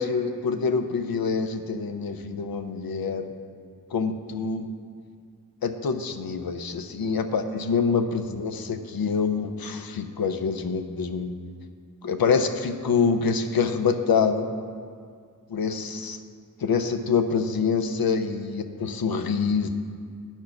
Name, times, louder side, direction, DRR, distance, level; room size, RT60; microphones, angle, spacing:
voice 1, 0.0-3.3 3.9-4.7 5.6-11.3 12.0-14.5 15.5-16.2 16.6-19.7, left 5 dB, 85° left, 8 dB, 0.6 m, -26 dB
10.5 x 4.5 x 5.9 m, 2.1 s
wide cardioid pair, 60°, 35 cm